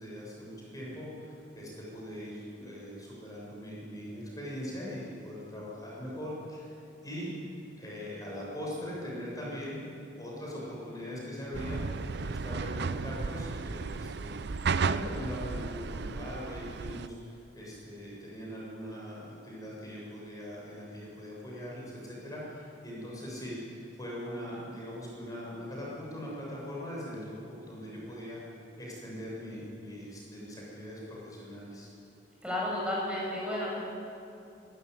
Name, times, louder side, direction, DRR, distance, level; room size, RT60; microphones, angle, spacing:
voice 1, 0.0-6.7 7.0-7.5 7.8-9.9 10.2-31.9, equal, 20° left, -5 dB, 6.9 m, -41 dB
sound 1, 11.5-17.1, right 4 dB, 60° right, 0.6 m, -34 dB
voice 2, 32.4-33.8, left 1 dB, 5° right, -5 dB, 6.9 m, -32 dB
29.0 x 13.5 x 9.6 m, 2.6 s
head